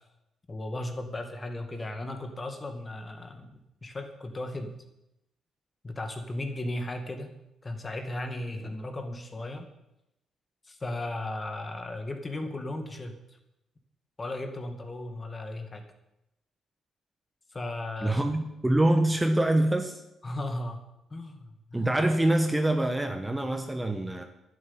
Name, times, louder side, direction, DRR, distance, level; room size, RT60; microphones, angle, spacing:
voice 1, 0.5-4.8 5.8-7.3 7.6-9.7 10.7-13.4 14.2-15.9 17.5-18.2 20.2-20.8 21.1-21.9, left 1 dB, 25° left, 6 dB, 2.3 m, -36 dB
voice 2, 18.0-20.0 21.7-24.2, right 1 dB, 10° right, 6 dB, 1.4 m, -25 dB
11.0 x 9.6 x 9.0 m, 0.88 s
cardioid pair, 90°, 0 cm